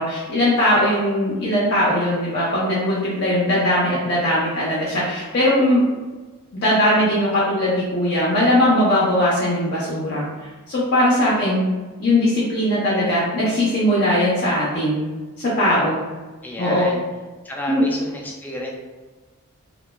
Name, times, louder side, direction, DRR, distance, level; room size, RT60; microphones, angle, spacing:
voice 1, 0.0-5.8 6.5-10.3 10.7-11.7 12.0-15.0 15.4-16.0 16.6-16.9 17.7-17.8, left 1 dB, 50° left, -7 dB, 0.6 m, -19 dB
voice 2, 16.4-17.0 17.4-18.7, equal, 10° left, -2 dB, 0.3 m, -31 dB
3.0 x 2.1 x 2.2 m, 1.3 s
head